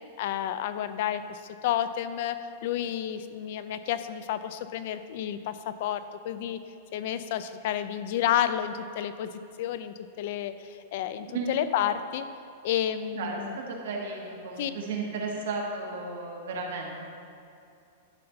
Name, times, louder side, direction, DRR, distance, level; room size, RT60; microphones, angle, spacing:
voice 1, 0.2-6.6 6.9-9.3 9.6-12.3 12.6-13.6 14.6-14.7, left 10 dB, 45° left, 12 dB, 0.4 m, -30 dB
voice 2, 13.1-17.1, right 3 dB, 65° right, -1 dB, 1.7 m, -34 dB
11.5 x 4.3 x 6.5 m, 2.5 s
supercardioid pair, 180°, 0 cm